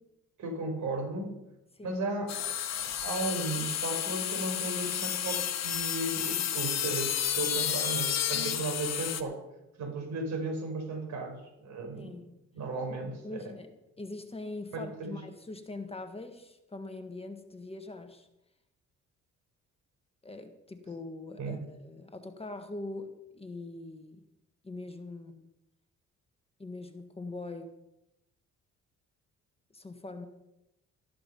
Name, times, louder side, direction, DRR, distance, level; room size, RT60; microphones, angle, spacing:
voice 1, 0.4-1.4 1.8-9.4 9.8-12.2 12.5-13.4 14.7-15.2 21.4-21.6, right 2 dB, 70° right, 3 dB, 4.8 m, -35 dB
sound 1, 2.3-9.2, left 10 dB, 60° left, 1.3 m, -31 dB
voice 2, 11.9-12.3 13.2-18.3 20.2-24.2 24.6-25.5 26.6-27.7 29.7-30.3, left 2 dB, 20° left, 7 dB, 1.6 m, -42 dB
13.5 x 11.5 x 5.5 m, 0.89 s
cardioid pair, 90°, 30 cm